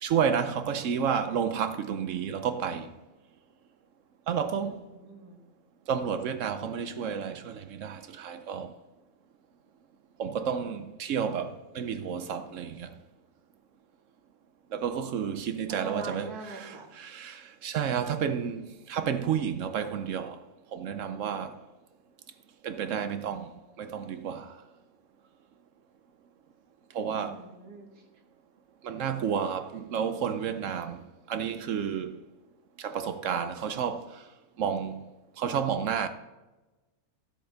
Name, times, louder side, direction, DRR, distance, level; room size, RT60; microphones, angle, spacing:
voice 1, 0.0-2.9 4.3-4.8 5.9-8.7 10.2-12.9 14.7-20.4 20.7-21.6 22.6-24.5 26.9-27.4 28.8-32.2 32.8-34.2 34.6-35.0 35.4-36.1, right 7 dB, 65° right, 0.9 m, -31 dB
voice 2, 4.6-5.4 15.7-16.9 27.2-27.9, right 4 dB, 90° right, 2.0 m, -43 dB
13.5 x 7.7 x 3.9 m
omnidirectional pair, 1.6 m